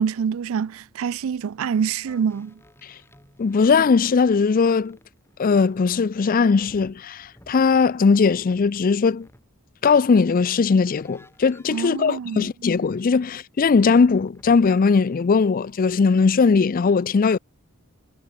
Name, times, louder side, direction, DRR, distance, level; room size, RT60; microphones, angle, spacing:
voice 1, 0.0-2.6 11.7-12.5, right 7 dB, 65° right, 0.4 m, -26 dB
sound 1, 2.0-4.4 4.7-9.5 10.9-12.2 13.6-14.9, left 1 dB, 10° left, 6.4 m, -54 dB
voice 2, 3.4-5.0 5.4-9.3 9.8-17.4, left 5 dB, 40° left, 0.4 m, -19 dB
head